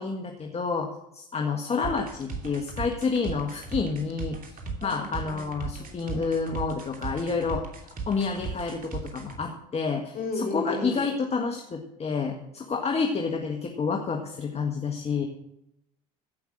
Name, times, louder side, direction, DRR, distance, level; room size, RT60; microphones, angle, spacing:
voice 1, 0.0-4.5 4.8-7.6 8.1-15.3, left 4 dB, 30° left, 3 dB, 1.6 m, -29 dB
sound 1, 1.8-9.4, right 4 dB, 45° right, 2.8 m, -36 dB
voice 2, 4.8-5.5 5.8-6.3 10.1-11.0, left 2 dB, 45° left, 2 dB, 4.8 m, -35 dB
15.0 x 5.8 x 7.9 m, 0.83 s
hypercardioid pair, 70°, 20 cm